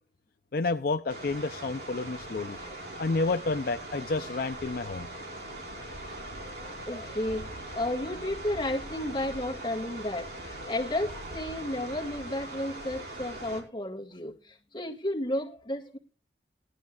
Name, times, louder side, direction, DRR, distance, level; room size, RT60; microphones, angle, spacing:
voice 1, 0.5-2.6 3.0-5.1, left 3 dB, 55° left, 0.5 m, -30 dB
sound 1, 1.1-13.6, right 1 dB, 60° right, 4.1 m, -41 dB
voice 2, 5.8-6.2 6.4-16.0, left 1 dB, 25° left, 1.9 m, -33 dB
18.0 x 11.5 x 2.4 m
head